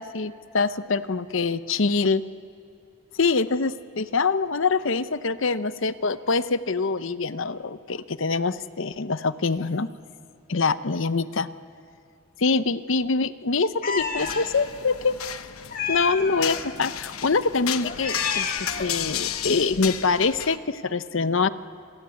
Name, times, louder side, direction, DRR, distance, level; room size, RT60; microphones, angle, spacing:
voice 1, 0.0-2.2 3.2-3.7 4.0-9.9 10.5-11.5 12.4-15.2 15.9-21.5, left 4 dB, 60° left, 14 dB, 0.8 m, -24 dB
Meow, 13.8-14.5 15.7-16.6 17.8-19.0, left 5 dB, 45° left, 1.9 m, -30 dB
sound 1, 14.2-20.6, left 10 dB, 90° left, 1.0 m, -33 dB
27.5 x 20.0 x 9.6 m, 2.8 s
head